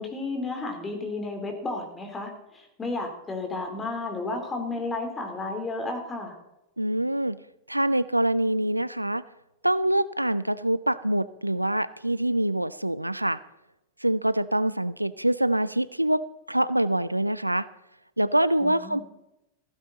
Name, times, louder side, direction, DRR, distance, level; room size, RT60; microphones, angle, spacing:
voice 1, 0.0-6.3 18.6-19.0, left 3 dB, 15° left, 3 dB, 3.2 m, -32 dB
voice 2, 6.8-7.4 7.7-9.2 9.6-13.4 14.0-16.2 16.5-17.7 18.2-19.0, right 1 dB, 85° right, 17 dB, 0.5 m, -25 dB
15.5 x 14.5 x 3.9 m, 0.90 s
figure-of-eight pair, 90°, 0 cm